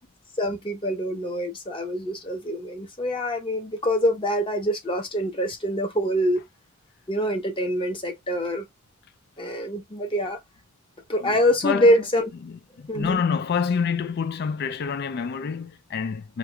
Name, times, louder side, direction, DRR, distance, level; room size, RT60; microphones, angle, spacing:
voice 1, 0.4-6.4 7.1-8.7 9.4-10.4 11.1-12.3 12.9-13.2, equal, 25° left, 0.9 m, -25 dB
voice 2, 11.2-11.9 12.4-16.4, left 6 dB, 50° left, 0.3 m, -27 dB
4.5 x 2.4 x 2.2 m
head